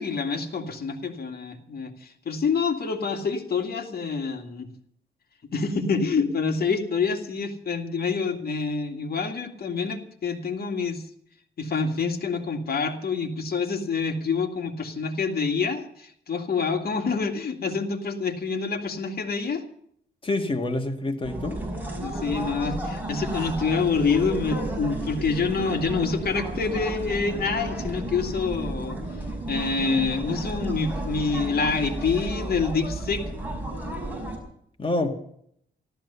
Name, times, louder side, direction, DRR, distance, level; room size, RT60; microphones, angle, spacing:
voice 1, 0.0-4.7 5.5-11.0 11.6-19.6 22.0-29.0 29.5-33.3, left 5 dB, 55° left, 4 dB, 2.2 m, -27 dB
voice 2, 20.2-21.6 34.8-35.1, left 2 dB, 30° left, 5 dB, 2.0 m, -27 dB
sound 1, 21.2-34.4, right 1 dB, 10° right, 5.1 m, -32 dB
14.0 x 13.0 x 6.9 m, 0.68 s
cardioid pair, 95°, 19 cm